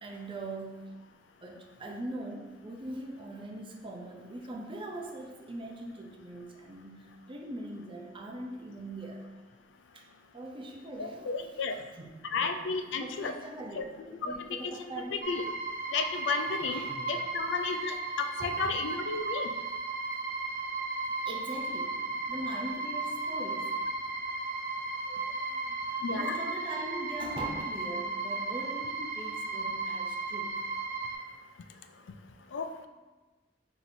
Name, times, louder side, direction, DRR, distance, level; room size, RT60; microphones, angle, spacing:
voice 1, 0.0-0.9 1.4-9.2 9.9-10.1 10.3-11.3 11.7-12.5 13.0-15.2 16.6-17.3 18.4-18.7 21.3-21.9 22.3-23.8 25.1-30.6, right 1 dB, 30° right, 1 dB, 0.5 m, -41 dB
voice 2, 11.0-11.8 12.2-13.4 13.7-13.8 14.2-15.4 15.9-19.5 26.0-26.4 32.5-32.9, left 4 dB, 80° left, 7 dB, 0.4 m, -33 dB
sound 1, 15.2-31.1, right 3 dB, 50° right, 0.9 m, -35 dB
5.8 x 2.9 x 2.6 m, 1.2 s
head